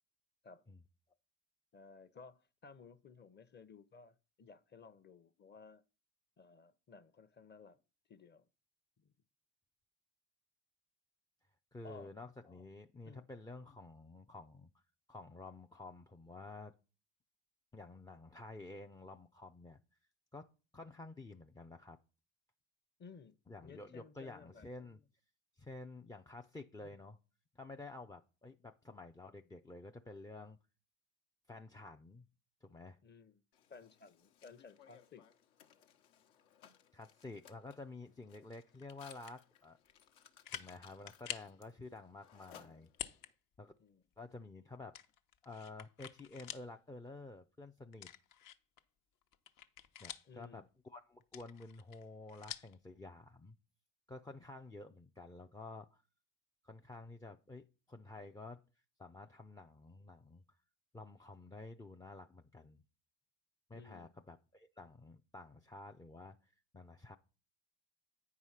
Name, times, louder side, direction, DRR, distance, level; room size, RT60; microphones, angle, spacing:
voice 1, 1.7-5.8 6.4-7.8 8.1-8.5 9.0-9.1 11.8-12.1 13.0-13.2 23.0-23.4 23.6-24.7 26.8-27.0 33.0-33.4 33.7-35.3 42.5-42.9 43.8-44.0 50.3-50.7 63.7-64.1, left 5 dB, 25° left, 0.7 m, -57 dB
voice 2, 11.7-14.8 15.1-16.7 17.7-19.8 20.3-20.5 20.7-22.0 23.5-25.0 25.6-27.2 27.6-30.6 31.5-32.2 32.6-33.0 36.9-39.8 40.5-42.9 43.6-43.7 44.2-45.0 45.4-48.1 50.0-53.5 54.1-56.0 56.6-58.6 59.0-60.6 60.9-62.8 63.7-67.2, left 2 dB, 10° left, 0.3 m, -51 dB
Mechanisms, 33.5-43.3, left 9 dB, 70° left, 1.1 m, -63 dB
sound 1, 38.8-39.4 39.9-40.0 40.4-40.8 41.1-41.6 42.9-43.3 43.7-43.8 44.9-46.7 47.1-47.2 47.9-48.8 49.2-50.5 51.2-52.8, left 10 dB, 55° left, 0.9 m, -47 dB
8.9 x 4.8 x 5.6 m
supercardioid pair, 85°, 41 cm